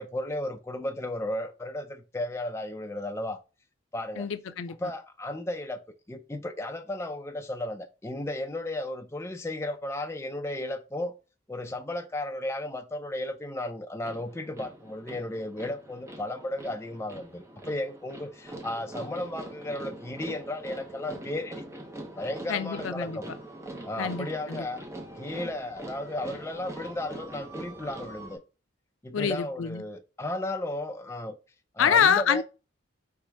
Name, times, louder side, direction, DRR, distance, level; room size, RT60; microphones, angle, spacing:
voice 1, 0.0-3.4 3.9-4.3 4.8-5.8 6.1-11.1 11.5-21.7 22.2-23.3 23.8-24.8 25.2-28.4 29.0-31.4 31.7-32.4, left 1 dB, 15° left, 0.4 m, -34 dB
voice 2, 4.2-4.8 22.5-23.2 24.0-24.6 29.1-29.8 31.8-32.4, left 7 dB, 75° left, 0.4 m, -26 dB
sound 1, 14.0-28.4, right 1 dB, 15° right, 0.8 m, -43 dB
4.7 x 3.0 x 3.4 m
head